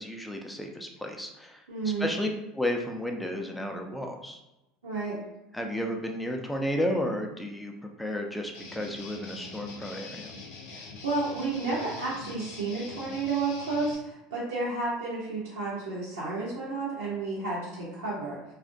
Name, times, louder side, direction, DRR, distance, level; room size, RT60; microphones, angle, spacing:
voice 1, 0.0-2.3 2.5-4.4 5.5-7.7 8.0-10.3, left 1 dB, 5° left, 2 dB, 0.4 m, -32 dB
voice 2, 1.7-2.1 4.8-5.2 10.7-18.4, right 3 dB, 90° right, -8 dB, 0.6 m, -31 dB
Guitar, 8.5-14.0, left 3 dB, 75° left, 0.4 m, -44 dB
2.4 x 2.0 x 2.5 m, 0.94 s
hypercardioid pair, 85°, 0 cm